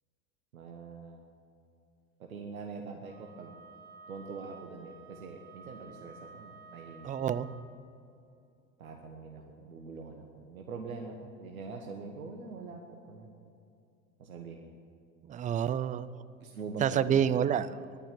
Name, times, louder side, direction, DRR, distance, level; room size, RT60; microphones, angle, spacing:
voice 1, 0.5-1.2 2.2-3.6 4.1-7.4 8.8-13.5 14.2-14.7 16.4-17.2, right 4 dB, 80° right, 2 dB, 1.3 m, -44 dB
Wind instrument woodwind instrument, 3.0-7.7, right 4 dB, 25° left, 3.9 m, -53 dB
voice 2, 7.0-7.5 15.2-16.2 16.8-18.0, right 9 dB, 20° right, 15 dB, 0.4 m, -29 dB
11.5 x 9.7 x 9.1 m, 2.6 s
hypercardioid pair, 80°, 41 cm